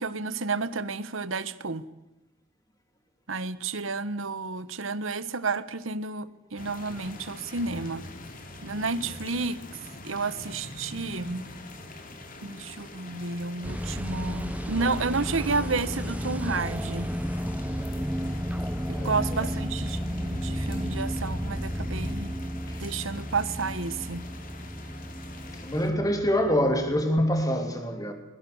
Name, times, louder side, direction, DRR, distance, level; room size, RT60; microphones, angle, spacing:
voice 1, 0.0-1.8 3.3-8.1 8.6-9.6 10.0-11.5 12.4-17.1 19.0-22.3 22.8-24.2, right 4 dB, 75° right, 1.2 m, -31 dB
sound 1, 6.6-25.9, left 2 dB, 45° left, 3.0 m, -44 dB
sound 2, 13.6-27.0, equal, 5° right, 0.8 m, -33 dB
voice 2, 18.9-19.4 25.6-28.1, equal, 20° left, 3.2 m, -26 dB
23.0 x 21.5 x 7.2 m
head